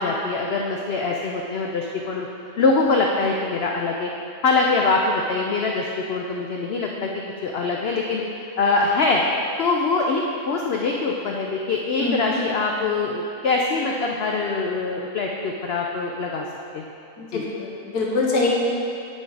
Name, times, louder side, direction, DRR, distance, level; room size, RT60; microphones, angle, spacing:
voice 1, 0.0-2.3 2.6-4.1 4.4-7.1 7.4-8.2 8.6-9.2 9.6-16.4 16.7-16.9 17.3-17.5, left 3 dB, 70° left, 0 dB, 0.6 m, -23 dB
voice 2, 12.0-12.3 17.2-18.5, left 3 dB, 90° left, -3 dB, 1.6 m, -24 dB
9.6 x 4.7 x 3.9 m, 2.6 s
omnidirectional pair, 1.6 m